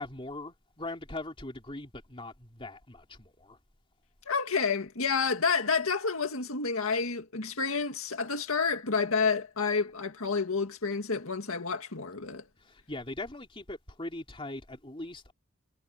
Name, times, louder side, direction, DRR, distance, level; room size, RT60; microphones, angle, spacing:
voice 1, 0.0-3.6 12.6-15.3, left 2 dB, 25° left, 3.2 m, -41 dB
voice 2, 4.3-12.4, left 5 dB, 80° left, 2.0 m, -29 dB
head